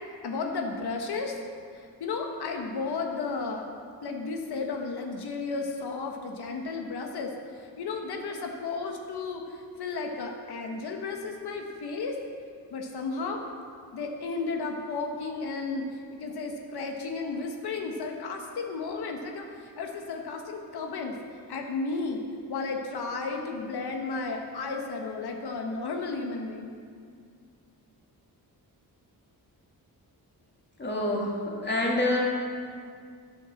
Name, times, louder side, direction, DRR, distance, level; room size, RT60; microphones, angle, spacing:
voice 1, 0.2-1.3 2.0-3.6 4.0-7.3 7.8-9.4 9.8-12.2 12.7-13.4 13.9-15.9 16.2-21.1 21.5-22.2 22.5-26.7, left 4 dB, 85° left, 2 dB, 1.4 m, -33 dB
voice 2, 30.8-32.3, left 1 dB, 30° left, -2 dB, 2.6 m, -27 dB
11.5 x 9.4 x 7.2 m, 2.2 s
wide cardioid pair, 140°, 38 cm